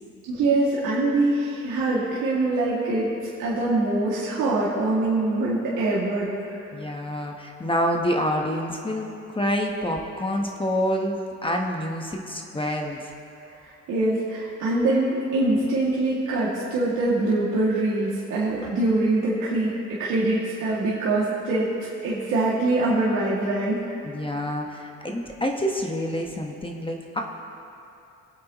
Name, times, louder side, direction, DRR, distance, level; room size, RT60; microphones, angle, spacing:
voice 1, 0.3-3.1 3.4-6.6 13.9-19.7 20.0-21.7 22.0-23.9, right 2 dB, 85° right, -9 dB, 2.2 m, -23 dB
voice 2, 6.7-13.1 24.0-27.2, equal, 15° left, 1 dB, 1.1 m, -27 dB
23.0 x 8.5 x 3.0 m, 2.7 s
cardioid pair, 90°, 30 cm